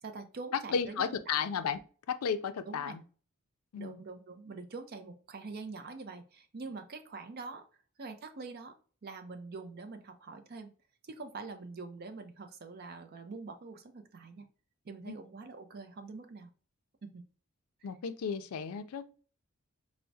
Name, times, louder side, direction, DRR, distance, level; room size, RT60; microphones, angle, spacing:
voice 1, 0.0-1.4 2.7-2.9 3.7-7.7 8.0-8.8 9.0-10.7 11.0-14.4 14.8-16.5 17.0-17.2, right 3 dB, 45° right, 0.5 m, -45 dB
voice 2, 0.5-1.8 2.1-3.0 3.7-4.0 15.1-15.2 17.8-19.1, left 6 dB, 85° left, 0.4 m, -33 dB
4.5 x 2.1 x 2.6 m
head